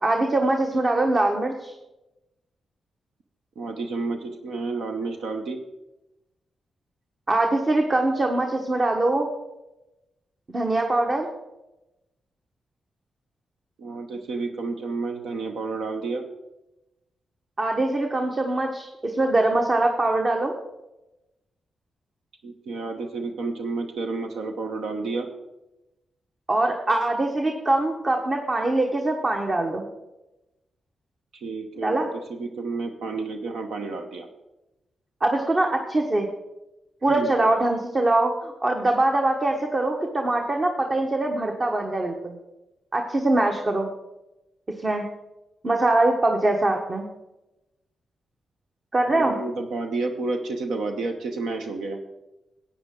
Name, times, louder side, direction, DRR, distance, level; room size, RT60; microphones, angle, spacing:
voice 1, 0.0-1.7 7.3-9.3 10.5-11.3 17.6-20.5 26.5-29.9 31.8-32.1 35.2-36.3 37.0-42.3 42.9-43.9 44.8-45.1 45.6-47.1 48.9-49.4, right 2 dB, 40° right, 2 dB, 1.3 m, -23 dB
voice 2, 3.6-5.6 13.8-16.2 22.4-25.3 31.3-34.3 37.1-37.3 49.1-52.0, right 3 dB, 80° right, 4 dB, 0.8 m, -30 dB
13.0 x 8.6 x 3.8 m, 0.97 s
supercardioid pair, 45°, 0 cm